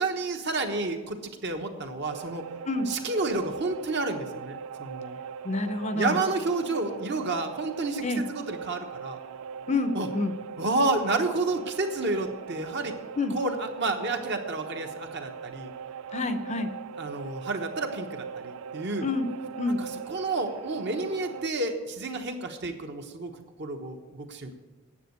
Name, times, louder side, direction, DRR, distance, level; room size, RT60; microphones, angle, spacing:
voice 1, 0.0-2.4 2.9-5.2 5.9-9.2 9.9-10.1 10.6-12.9 13.3-15.7 17.0-19.1 19.8-23.3 23.6-24.5, right 2 dB, 50° right, 5 dB, 1.1 m, -30 dB
sound 1, 2.1-21.5, right 7 dB, 70° right, 0.3 m, -40 dB
voice 2, 5.4-6.2 8.0-8.2 9.7-10.3 13.2-13.3 16.1-16.7 19.0-19.3 19.6-19.8, left 2 dB, 30° left, 9 dB, 0.6 m, -28 dB
10.0 x 7.4 x 8.1 m, 1.3 s
head